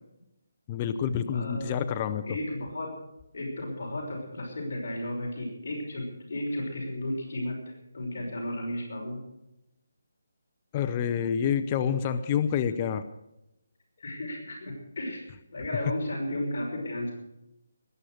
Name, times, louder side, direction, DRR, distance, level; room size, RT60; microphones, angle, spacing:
voice 1, 0.7-2.4 10.7-13.0, left 8 dB, 20° left, 9 dB, 0.6 m, -28 dB
voice 2, 1.3-1.8 2.2-2.9 3.3-7.6 7.9-9.2 14.0-15.3 15.5-17.1, left 1 dB, 55° left, -1 dB, 5.8 m, -34 dB
20.5 x 10.0 x 6.5 m, 0.87 s
hypercardioid pair, 170°, 0 cm